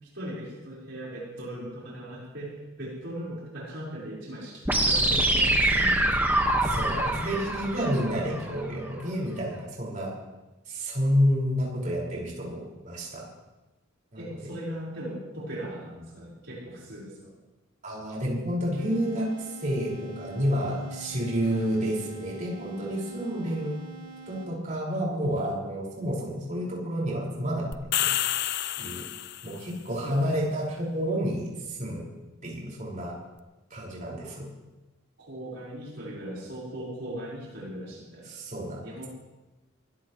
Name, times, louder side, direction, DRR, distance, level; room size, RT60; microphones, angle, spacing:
voice 1, 0.0-6.3 8.3-8.8 14.2-17.3 21.4-21.8 23.2-23.6 30.0-30.5 34.2-34.4 35.2-38.3 38.8-39.1, right 1 dB, 60° right, -6 dB, 5.1 m, -39 dB
sound 1, 4.6-8.6, right 1 dB, 10° right, 1.7 m, -25 dB
voice 2, 6.6-10.1 10.7-13.3 14.1-14.2 17.8-23.8 24.3-27.7 28.0-28.1 28.8-29.0 29.4-32.0 32.4-33.2 33.7-34.5 38.3-38.8, equal, 40° right, -4 dB, 5.7 m, -29 dB
sound 2, 18.8-24.8, right 4 dB, 85° right, 7.2 m, -46 dB
sound 3, 27.7-29.7, left 12 dB, 55° left, 0.6 m, -29 dB
24.5 x 16.5 x 3.3 m, 1.1 s
head